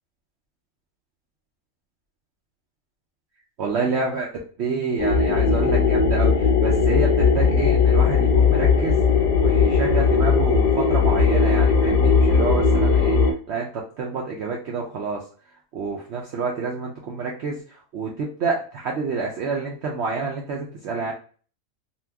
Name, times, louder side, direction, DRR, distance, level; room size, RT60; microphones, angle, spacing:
voice 1, 3.6-4.3 4.6-9.0 9.4-15.2 15.7-21.1, right 4 dB, 60° right, -2 dB, 0.8 m, -28 dB
sound 1, 5.0-13.3, left 5 dB, 55° left, 0.4 m, -18 dB
2.8 x 2.3 x 3.3 m, 0.40 s
omnidirectional pair, 1.4 m